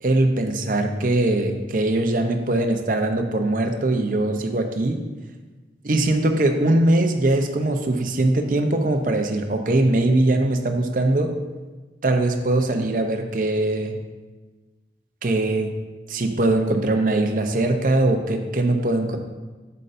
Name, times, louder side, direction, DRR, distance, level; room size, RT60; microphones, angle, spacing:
voice 1, 0.0-5.0 5.8-11.4 12.0-14.0 15.2-15.7 16.1-19.2, right 2 dB, 50° right, 5 dB, 0.6 m, -21 dB
8.2 x 6.6 x 2.5 m, 1.3 s
head